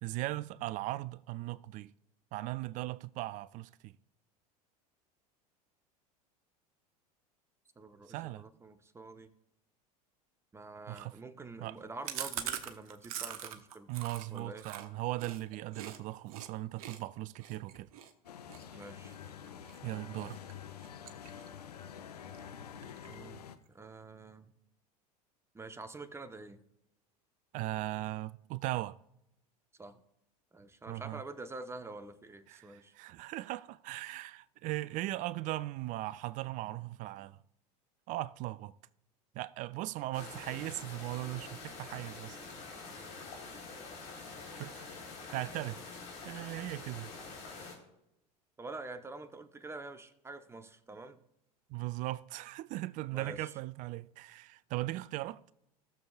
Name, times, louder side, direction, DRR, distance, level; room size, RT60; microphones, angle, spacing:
voice 1, 0.0-1.9 2.3-3.9 8.1-8.4 10.9-11.1 11.6-11.8 13.9-17.9 19.8-20.4 27.5-29.0 30.9-31.2 32.5-37.4 38.1-38.7 39.3-42.4 44.6-45.0 45.3-45.8 46.2-47.1 51.7-55.4, right 17 dB, 40° right, 0.4 m, -38 dB
voice 2, 7.8-9.3 10.5-13.9 14.3-14.7 18.7-19.2 22.4-22.5 23.1-24.5 25.5-26.6 29.8-30.0 30.5-32.9 48.6-51.2 53.1-53.5, right 3 dB, 15° right, 0.9 m, -47 dB
Chewing mastication, 12.0-16.0 16.3-16.5 16.8-19.8 20.2-20.5 20.8-21.7 22.0-22.1 22.3-22.4 22.7-23.3, right 9 dB, 65° right, 0.9 m, -42 dB
sound 1, 18.2-23.6, left 8 dB, 80° left, 0.7 m, -48 dB
sound 2, 40.1-47.7, left 4 dB, 55° left, 3.7 m, -46 dB
18.0 x 7.0 x 2.4 m
figure-of-eight pair, 80°, 20 cm